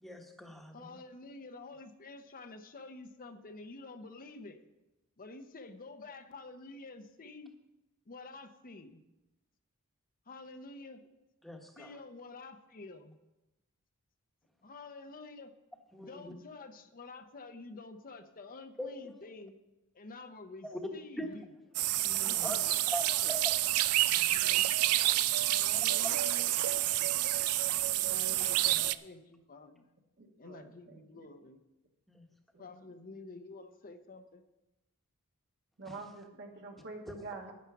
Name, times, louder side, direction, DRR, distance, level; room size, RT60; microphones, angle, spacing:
voice 1, 0.0-1.0 11.4-11.9 15.9-16.3 18.8-19.1 20.6-20.8 21.2-21.3 22.0-22.6 22.9-23.5 24.1-24.7 25.7-25.9 26.8-27.2 27.9-28.1 32.1-32.3 35.8-35.9 37.1-37.2, equal, ahead, 2 dB, 1.2 m, -42 dB
voice 2, 0.7-4.6 5.2-7.5 8.1-9.0 10.3-11.0 11.8-13.2 14.6-15.5 16.0-19.6 19.9-21.5 22.2-23.3 25.5-26.6 28.0-29.9 30.4-31.6 32.6-34.4, left 3 dB, 40° left, 7 dB, 0.7 m, -49 dB
sound 1, 21.7-28.9, right 15 dB, 80° right, 0.4 m, -29 dB
voice 3, 30.2-31.2 32.5-32.7 35.8-37.5, right 3 dB, 55° right, 2 dB, 1.5 m, -46 dB
9.7 x 9.2 x 5.8 m, 0.98 s
head